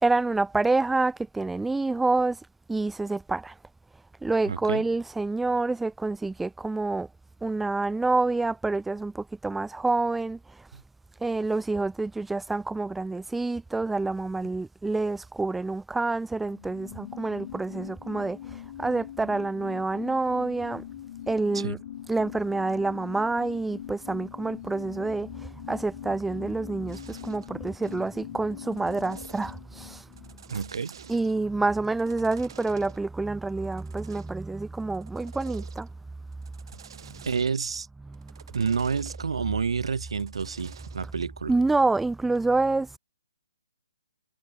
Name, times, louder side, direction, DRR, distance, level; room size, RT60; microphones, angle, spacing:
voice 1, 0.0-2.4 2.7-3.5 4.2-7.1 7.4-10.4 11.2-20.8 21.3-21.8 22.1-30.1 31.1-35.9 37.0-37.2 38.1-38.3 41.5-43.0, right 3 dB, 5° right, 1.0 m, -27 dB
voice 2, 4.5-4.8 10.7-10.8 21.5-21.8 30.5-31.0 37.3-37.9 38.5-41.5, right 5 dB, 70° right, 0.7 m, -29 dB
sound 1, 16.3-31.4 31.7-31.8, left 11 dB, 45° left, 2.7 m, -42 dB
sound 2, 26.9-27.5 27.8-28.1 28.5-29.6 30.0-31.4 31.8-33.0 33.6-34.4 34.8-35.9 36.3-37.7 38.1-39.3 39.9-41.1, right 8 dB, 55° right, 4.2 m, -49 dB
figure-of-eight pair, 140°, 3 cm